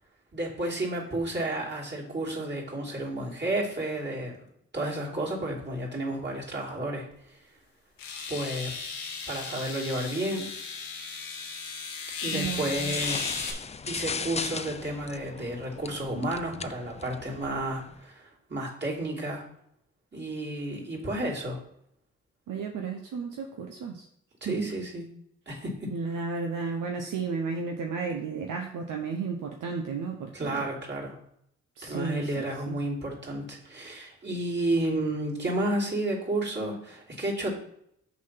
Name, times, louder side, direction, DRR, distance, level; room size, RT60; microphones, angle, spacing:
voice 1, 0.3-4.3 4.7-7.0 8.3-8.7 9.3-10.5 12.2-13.2 13.8-19.4 20.1-21.6 24.4-25.0 25.5-25.7 30.3-31.2 31.8-37.5, right 1 dB, 30° right, -4 dB, 3.0 m, -31 dB
sound 1, 7.1-7.2 8.0-13.5, left 5 dB, 85° left, 1.1 m, -35 dB
voice 2, 12.3-12.9 22.5-24.1 24.4-24.7 25.9-30.7 31.8-32.7, right 5 dB, 70° right, 2 dB, 0.8 m, -33 dB
sound 2, 12.7-18.0, left 5 dB, 20° left, 0.4 m, -37 dB
6.0 x 4.0 x 5.8 m, 0.72 s
supercardioid pair, 45°, 33 cm